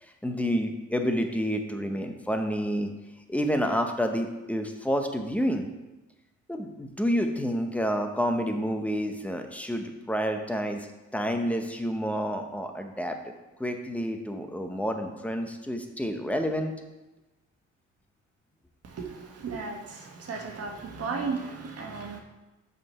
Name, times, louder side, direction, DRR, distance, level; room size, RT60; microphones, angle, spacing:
voice 1, 0.0-2.9 3.3-5.7 6.5-10.9 11.1-13.2 13.6-16.7, equal, 5° left, 5 dB, 0.8 m, -29 dB
voice 2, 18.8-22.2, right 4 dB, 55° right, 2 dB, 1.4 m, -35 dB
5.9 x 4.8 x 5.4 m, 1.1 s
cardioid pair, 90°, 30 cm